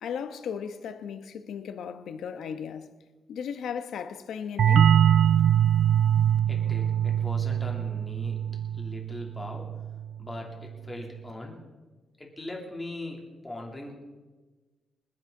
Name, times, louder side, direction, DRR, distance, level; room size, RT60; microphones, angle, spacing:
voice 1, 0.0-2.9 3.3-5.0, left 7 dB, 85° left, 1.1 m, -36 dB
sound 1, 4.6-10.0, right 9 dB, 55° right, 0.4 m, -23 dB
voice 2, 6.5-8.4 8.7-9.7 10.2-11.6 12.2-13.9, left 1 dB, 15° left, 2.9 m, -40 dB
28.5 x 10.0 x 3.9 m
wide cardioid pair, 160°, 0 cm